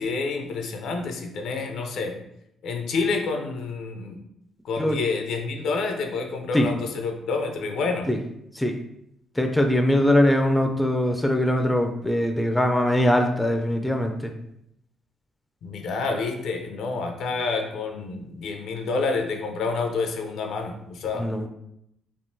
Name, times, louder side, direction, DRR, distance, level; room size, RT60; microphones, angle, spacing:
voice 1, 0.0-2.2 2.6-4.2 4.6-8.1 15.6-21.3, left 4 dB, 75° left, 4 dB, 0.5 m, -28 dB
voice 2, 9.4-14.3 21.2-21.5, left 1 dB, 5° left, 4 dB, 0.4 m, -22 dB
3.5 x 2.4 x 2.6 m, 0.77 s
cardioid pair, 90°, 0 cm